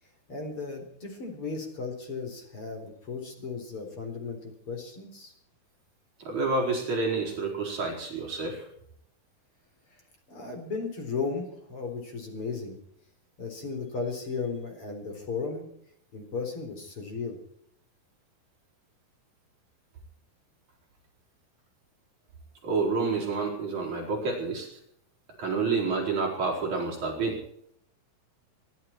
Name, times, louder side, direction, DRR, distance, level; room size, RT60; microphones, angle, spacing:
voice 1, 0.3-5.3 10.3-12.8 13.4-15.7 16.1-17.4, left 4 dB, 35° left, 4 dB, 4.7 m, -35 dB
voice 2, 6.2-8.7 22.6-24.7 25.4-27.4, right 4 dB, 50° right, -2 dB, 5.9 m, -29 dB
24.5 x 12.5 x 4.6 m, 0.69 s
omnidirectional pair, 4.3 m